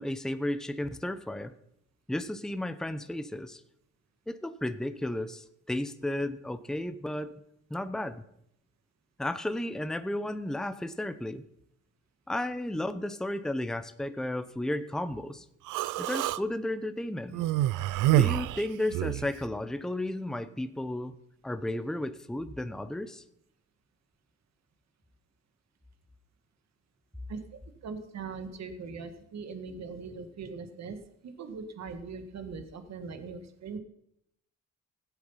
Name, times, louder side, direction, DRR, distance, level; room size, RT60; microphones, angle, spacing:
voice 1, 0.0-1.5 2.1-3.6 4.3-7.4 7.7-8.2 9.2-11.4 12.3-15.5 16.0-17.4 18.1-21.2 21.4-23.2, left 1 dB, ahead, 11 dB, 0.8 m, -33 dB
Human voice, 15.7-16.4 17.3-19.3, right 14 dB, 85° right, 0.5 m, -27 dB
voice 2, 27.3-31.0 31.2-33.8, right 4 dB, 60° right, 8 dB, 1.8 m, -41 dB
16.0 x 8.1 x 5.7 m, 0.76 s
cardioid pair, 90°, 30 cm